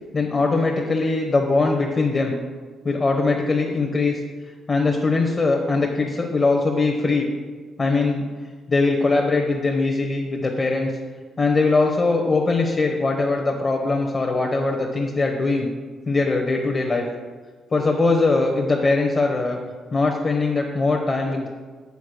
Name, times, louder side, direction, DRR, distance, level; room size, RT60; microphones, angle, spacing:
voice 1, 0.1-2.3 2.8-4.2 4.7-7.3 7.8-8.2 8.7-10.9 11.4-15.7 16.1-17.0 17.7-19.6 19.9-21.5, left 3 dB, 40° left, 1 dB, 1.1 m, -21 dB
7.0 x 4.4 x 6.6 m, 1.4 s
supercardioid pair, 65°, 0 cm